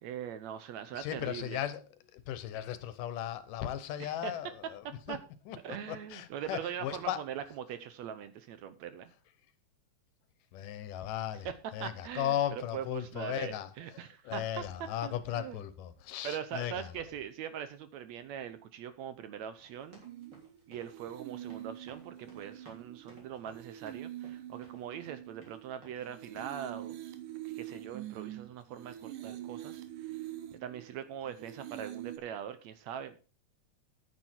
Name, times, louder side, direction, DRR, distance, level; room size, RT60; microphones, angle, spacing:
voice 1, 0.0-1.6 4.0-4.3 5.1-5.2 5.6-9.1 11.5-11.6 11.8-14.6 15.0-15.6 16.2-20.0 20.7-27.0 27.4-30.3 30.5-33.3, right 9 dB, 75° right, 1.8 m, -42 dB
voice 2, 0.9-1.8 2.1-5.2 5.5-7.2 10.5-16.9, left 11 dB, 85° left, 2.6 m, -37 dB
sound 1, 19.6-25.2 25.4-26.1 26.4-26.6, right 2 dB, 35° right, 3.9 m, -58 dB
sound 2, 20.0-32.2, right 13 dB, 90° right, 2.5 m, -45 dB
9.8 x 9.5 x 4.4 m
omnidirectional pair, 3.7 m